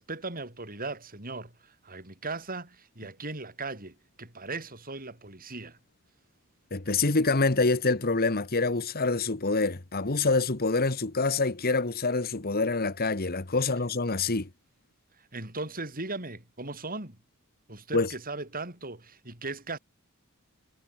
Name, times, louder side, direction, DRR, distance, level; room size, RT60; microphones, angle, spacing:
voice 1, 0.0-5.8 15.3-17.2 17.7-19.8, right 3 dB, 40° right, 7.5 m, -38 dB
voice 2, 6.7-14.5 17.9-18.1, left 3 dB, 45° left, 1.6 m, -26 dB
head